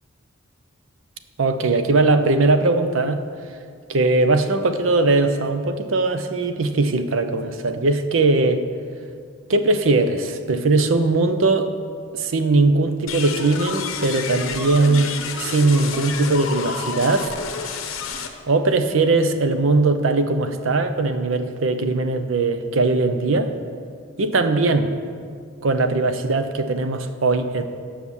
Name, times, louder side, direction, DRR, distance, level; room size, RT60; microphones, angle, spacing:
voice 1, 1.4-3.2 3.9-8.6 9.5-11.7 12.1-17.3 18.5-23.5 24.2-24.9 25.6-27.6, right 3 dB, 70° right, 9 dB, 0.6 m, -20 dB
sound 1, 13.1-18.3, left 5 dB, 75° left, 0.8 m, -30 dB
8.3 x 5.7 x 7.1 m, 2.2 s
head